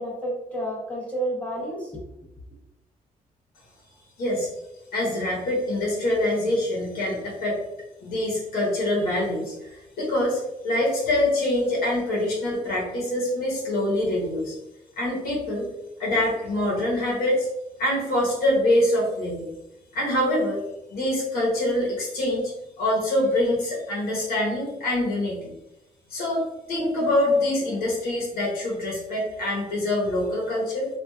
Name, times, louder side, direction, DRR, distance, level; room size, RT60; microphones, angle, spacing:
voice 1, 0.0-2.0, right 1 dB, 10° left, -4 dB, 0.7 m, -30 dB
voice 2, 4.2-4.5 4.9-7.6 8.0-9.5 10.0-14.5 15.0-15.7 16.0-17.5 17.8-19.5 19.9-20.6 20.9-22.5 22.8-25.5 26.1-26.4 26.7-30.9, left 1 dB, 90° left, -4 dB, 0.9 m, -24 dB
3.1 x 2.3 x 2.2 m, 0.92 s
cardioid pair, 120°, 15 cm